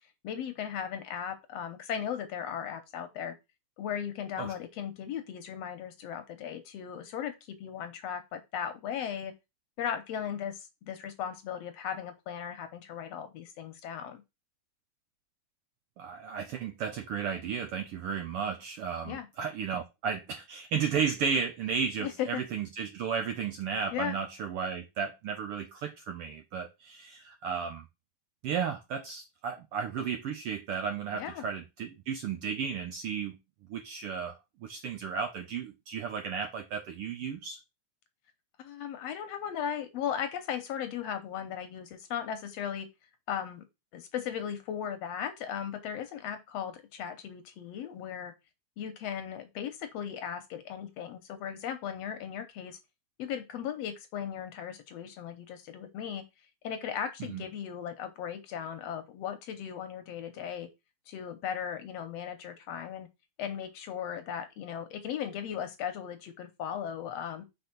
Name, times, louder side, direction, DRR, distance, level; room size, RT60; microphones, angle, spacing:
voice 1, 0.2-3.4 3.8-9.3 9.8-14.2 19.0-19.3 22.0-22.4 23.9-24.2 31.1-31.5 38.6-42.9 43.3-43.6 43.9-48.3 48.8-52.8 53.2-56.2 56.6-60.7 61.1-63.1 63.4-67.5, left 8 dB, 70° left, 1.8 m, -37 dB
voice 2, 16.0-27.8 28.4-33.4 33.7-37.6 57.3-57.4, right 6 dB, 75° right, 1.3 m, -34 dB
5.3 x 4.1 x 5.9 m
omnidirectional pair, 3.3 m